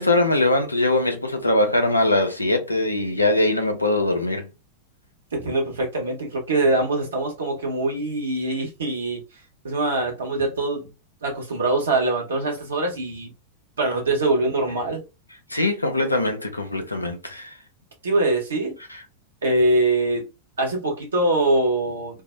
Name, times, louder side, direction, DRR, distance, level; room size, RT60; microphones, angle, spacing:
voice 1, 0.0-4.5 15.5-17.6 18.9-19.0, left 2 dB, 85° left, 0.5 m, -22 dB
voice 2, 5.3-9.2 9.6-10.9 11.2-13.3 13.8-15.0 18.0-18.7 19.4-20.3 20.6-22.2, right 2 dB, 70° right, 1.0 m, -23 dB
2.5 x 2.0 x 2.4 m
figure-of-eight pair, 90°, 0 cm